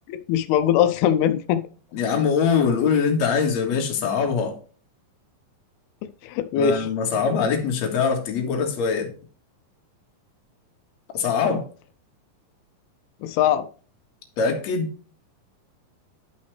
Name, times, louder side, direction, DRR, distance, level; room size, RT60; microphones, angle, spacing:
voice 1, 0.1-1.6 6.2-6.9 13.2-13.7, left 9 dB, 90° left, 2.6 m, -21 dB
voice 2, 1.9-4.6 6.6-9.1 11.1-11.6 14.4-14.9, left 6 dB, 55° left, 2.6 m, -22 dB
11.0 x 5.6 x 3.2 m
omnidirectional pair, 4.4 m